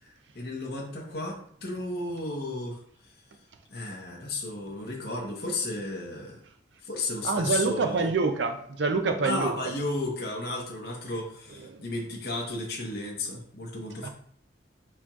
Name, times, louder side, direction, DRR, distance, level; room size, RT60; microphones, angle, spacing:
voice 1, 0.0-2.8 3.7-6.4 6.8-8.1 9.2-14.1, left 2 dB, 55° left, -2 dB, 1.0 m, -33 dB
voice 2, 7.2-9.6 11.7-11.8 14.0-14.1, right 4 dB, 75° right, 6 dB, 0.5 m, -26 dB
4.5 x 4.2 x 2.4 m, 0.63 s
head